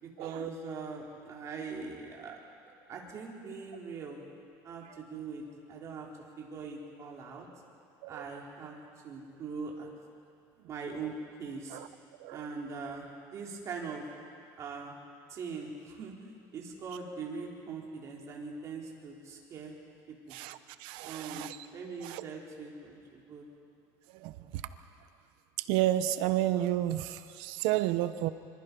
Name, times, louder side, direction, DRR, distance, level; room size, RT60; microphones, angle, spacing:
voice 1, 0.0-2.3 2.6-4.2 4.6-5.4 5.7-6.1 6.4-7.5 8.1-8.8 9.0-9.9 10.7-11.8 12.3-14.0 14.6-14.9 15.3-16.1 16.5-19.7 20.3-20.4 21.0-23.4, right 4 dB, 40° right, -2 dB, 4.2 m, -41 dB
voice 2, 20.3-21.6 22.1-22.2 24.2-24.3 25.7-28.3, right 13 dB, 80° right, 11 dB, 1.1 m, -30 dB
26.0 x 25.5 x 5.5 m, 2.3 s
cardioid pair, 155°, 8 cm